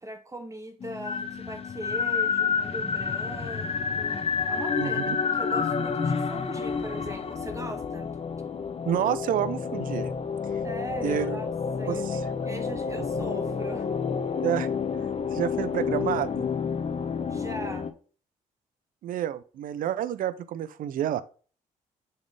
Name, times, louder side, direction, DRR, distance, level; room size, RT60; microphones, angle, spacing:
voice 1, 0.0-4.2 4.5-8.1 10.6-11.5 11.8-13.9 17.3-17.9, right 1 dB, 20° right, 0.8 m, -39 dB
sound 1, 0.8-17.9, left 6 dB, 40° left, 0.8 m, -29 dB
voice 2, 4.8-5.2 8.9-10.1 11.0-11.4 11.9-12.2 14.4-14.7 15.3-16.5 19.0-21.2, right 11 dB, 70° right, 0.5 m, -29 dB
6.7 x 4.4 x 3.3 m
supercardioid pair, 60°, 15 cm